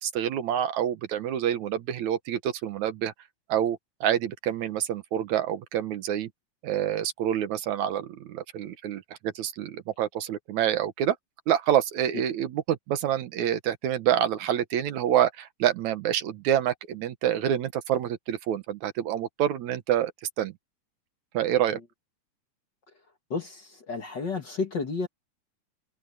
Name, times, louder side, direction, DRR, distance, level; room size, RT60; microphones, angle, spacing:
voice 1, 0.0-3.1 3.5-6.3 6.6-11.2 11.5-20.1 20.4-20.5 21.3-21.8, right 10 dB, 75° right, 2.4 m, -27 dB
voice 2, 23.3-25.1, left 4 dB, 40° left, 1.9 m, -31 dB
omnidirectional pair, 3.5 m